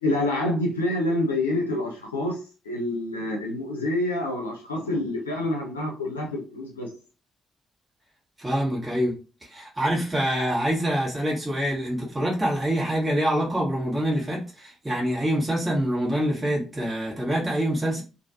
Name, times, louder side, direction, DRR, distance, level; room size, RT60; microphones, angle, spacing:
voice 1, 0.0-2.4 2.6-6.9, left 1 dB, 85° left, 0.5 m, -27 dB
voice 2, 8.4-9.2 9.5-18.0, equal, 20° right, 1.3 m, -25 dB
3.1 x 2.4 x 2.6 m
figure-of-eight pair, 40°, 0 cm